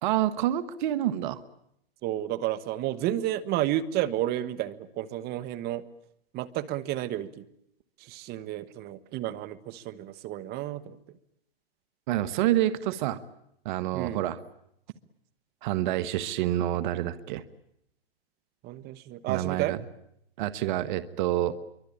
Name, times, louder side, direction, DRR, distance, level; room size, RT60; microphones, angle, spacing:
voice 1, 0.0-1.4 12.1-13.2 13.6-14.4 15.6-17.4 19.3-19.8 20.4-21.5, right 13 dB, 50° right, 14 dB, 1.8 m, -27 dB
voice 2, 2.0-5.8 6.3-7.4 8.0-11.0 13.9-14.2 18.6-19.8, right 13 dB, 35° right, 15 dB, 1.8 m, -31 dB
28.0 x 24.0 x 8.8 m, 0.75 s
hypercardioid pair, 125°, 30 cm